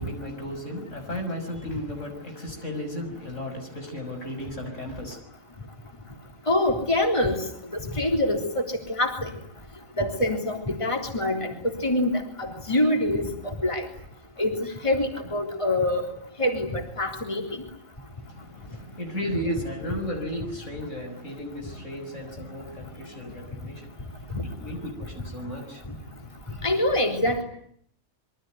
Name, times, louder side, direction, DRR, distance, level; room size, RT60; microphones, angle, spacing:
voice 1, 0.0-5.2 18.2-26.7 27.0-27.1, equal, 75° left, 4 dB, 6.7 m, -35 dB
voice 2, 6.5-7.4 7.7-9.3 10.0-13.9 14.4-16.0 16.4-17.5 24.3-24.4 25.9-26.0 26.6-27.4, left 1 dB, 25° left, 3 dB, 3.7 m, -25 dB
26.0 x 23.5 x 9.3 m, 0.66 s
omnidirectional pair, 1.3 m